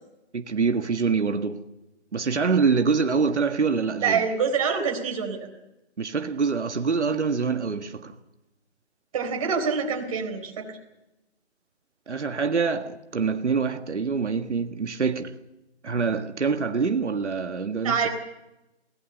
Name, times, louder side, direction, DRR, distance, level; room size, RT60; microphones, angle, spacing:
voice 1, 0.3-1.6 2.1-4.2 6.0-8.1 12.1-15.3 15.8-18.1, right 5 dB, 90° right, 1.7 m, -25 dB
voice 2, 4.0-5.5 9.1-10.8 17.8-18.1, right 6 dB, 30° right, 4.2 m, -26 dB
23.5 x 18.5 x 6.9 m
hypercardioid pair, 165°, 34 cm